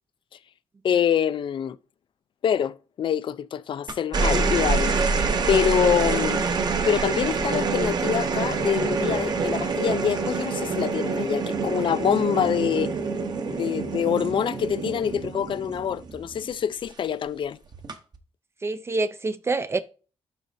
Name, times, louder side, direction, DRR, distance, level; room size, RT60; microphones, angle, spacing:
voice 1, 0.8-1.8 2.4-5.0 5.5-6.4 6.8-12.9 13.5-17.6, left 8 dB, 50° left, 0.4 m, -25 dB
sound 1, 3.9-16.5 17.7-18.2, right 4 dB, 40° right, 0.8 m, -26 dB
voice 2, 18.6-19.8, right 3 dB, 25° right, 0.4 m, -26 dB
11.5 x 4.1 x 2.6 m
wide cardioid pair, 175°, 11 cm